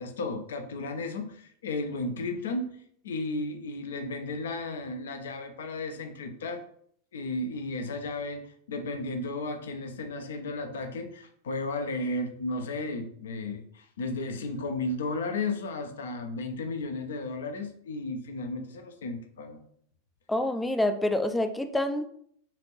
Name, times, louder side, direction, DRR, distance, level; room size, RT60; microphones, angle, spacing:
voice 1, 0.0-2.7 3.0-6.6 7.1-19.6, left 2 dB, 60° left, 7 dB, 0.5 m, -34 dB
voice 2, 20.3-22.1, left 1 dB, 5° left, 7 dB, 0.3 m, -27 dB
5.6 x 2.5 x 3.1 m, 0.64 s
figure-of-eight pair, 90°, 0 cm